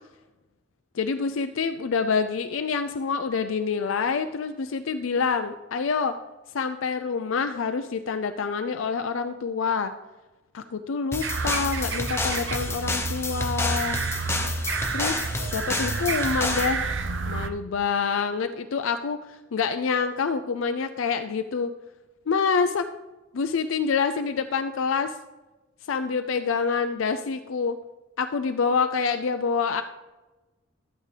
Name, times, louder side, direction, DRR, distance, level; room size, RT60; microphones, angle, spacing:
voice 1, 0.9-6.1 6.5-9.9 10.5-14.0 14.9-16.8 17.3-21.7 22.3-22.9 23.3-25.2 25.9-27.8 28.2-29.8, left 5 dB, 80° left, 8 dB, 0.4 m, -27 dB
sound 1, 11.1-16.8, left 2 dB, 15° left, 0.8 m, -30 dB
sound 2, 11.2-17.5, right 4 dB, 65° right, 0.6 m, -30 dB
12.0 x 8.9 x 3.3 m, 1.1 s
head